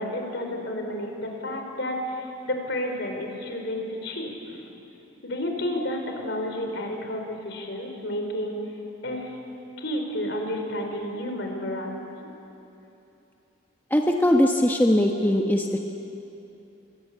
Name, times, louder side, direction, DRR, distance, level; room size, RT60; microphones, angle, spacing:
voice 1, 0.0-2.2 2.4-4.7 5.2-8.6 9.0-9.2 9.8-12.3, left 1 dB, 60° left, 3 dB, 4.6 m, -31 dB
voice 2, 13.9-15.7, left 1 dB, 10° left, 1 dB, 1.1 m, -20 dB
28.0 x 24.0 x 8.5 m, 2.9 s
head